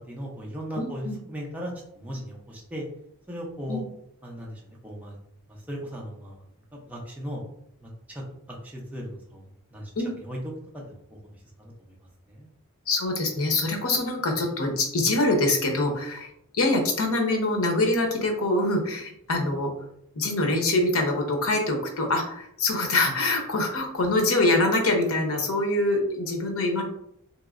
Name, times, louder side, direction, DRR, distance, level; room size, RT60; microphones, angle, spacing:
voice 1, 0.1-2.8 3.3-3.8 4.2-5.2 5.5-6.4 6.7-7.4 7.8-8.2 8.5-9.9 10.3-10.4 10.7-11.9 12.3-12.5, equal, 5° right, -3 dB, 0.6 m, -38 dB
voice 2, 0.8-1.2 3.7-3.8 10.0-10.1 12.9-19.7 20.1-26.8, left 2 dB, 65° left, 2 dB, 0.8 m, -24 dB
3.0 x 2.9 x 2.5 m, 0.71 s
head